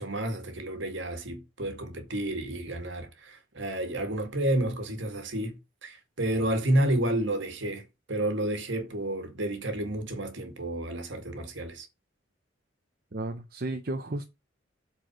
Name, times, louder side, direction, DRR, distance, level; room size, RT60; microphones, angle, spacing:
voice 1, 0.0-5.5 5.8-11.9, right 1 dB, 65° right, 2.0 m, -30 dB
voice 2, 13.1-14.3, right 2 dB, 50° right, 0.8 m, -33 dB
7.7 x 4.7 x 6.4 m
head